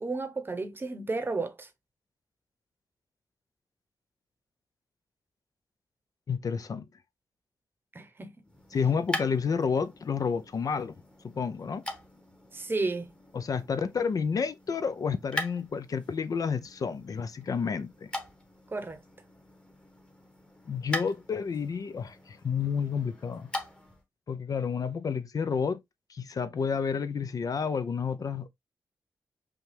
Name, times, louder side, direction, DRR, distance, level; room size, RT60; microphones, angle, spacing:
voice 1, 0.0-1.7 7.9-8.3 12.5-13.1 18.7-19.0, right 3 dB, 30° right, 0.8 m, -32 dB
voice 2, 6.3-6.9 8.7-10.9 11.2-11.8 13.3-18.1 20.7-23.5 24.3-25.8 26.1-28.5, left 6 dB, 55° left, 0.5 m, -30 dB
sound 1, 8.4-24.0, left 1 dB, 10° left, 1.2 m, -42 dB
5.6 x 2.3 x 3.3 m
wide cardioid pair, 95°, 7 cm